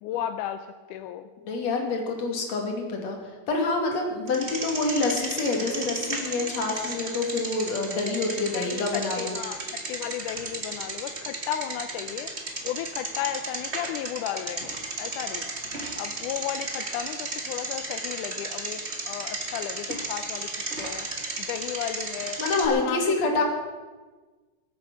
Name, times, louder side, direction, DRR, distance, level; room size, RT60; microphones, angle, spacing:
voice 1, 0.0-1.3 8.5-12.3 12.6-15.5 16.0-20.5 20.8-21.1 21.4-22.4 22.8-23.4, left 11 dB, 85° left, 9 dB, 2.2 m, -34 dB
voice 2, 1.4-3.2 3.5-9.4 22.4-23.4, left 3 dB, 60° left, 2 dB, 3.5 m, -27 dB
Bicycle, 4.3-22.7, right 2 dB, 30° right, 1.5 m, -34 dB
23.5 x 8.8 x 6.1 m, 1.3 s
omnidirectional pair, 3.5 m